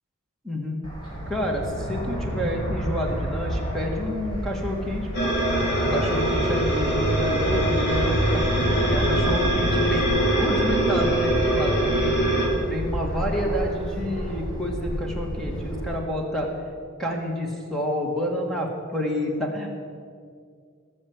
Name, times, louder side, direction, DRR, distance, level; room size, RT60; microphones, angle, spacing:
voice 1, 0.4-0.8 1.3-5.3 5.9-8.6 8.9-10.0 10.4-12.3 12.7-16.5 17.0-19.7, left 1 dB, ahead, 0 dB, 2.0 m, -29 dB
Fixed-wing aircraft airplane, 0.8-15.9, right 1 dB, 20° left, 3.8 m, -29 dB
sound 1, 5.1-12.5, right 1 dB, 50° left, 3.5 m, -23 dB
18.5 x 6.6 x 8.0 m, 2.1 s
head